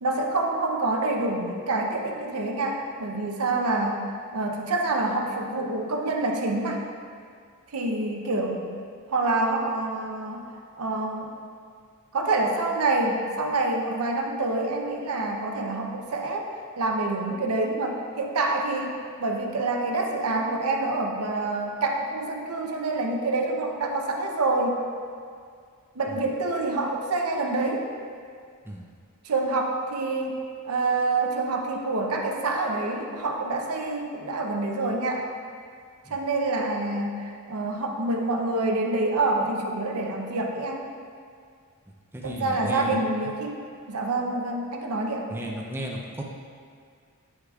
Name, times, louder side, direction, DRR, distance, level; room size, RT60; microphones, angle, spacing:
voice 1, 0.0-4.0 4.3-6.8 7.7-8.8 9.1-10.4 10.8-11.3 12.1-16.5 16.8-24.8 26.0-27.9 29.2-35.3 36.1-40.9 42.2-43.6 43.9-45.3, right 2 dB, 75° right, 1 dB, 0.7 m, -27 dB
voice 2, 42.1-43.0 45.3-46.2, right 1 dB, 10° right, -2 dB, 0.5 m, -34 dB
7.6 x 6.4 x 2.4 m, 2.2 s
head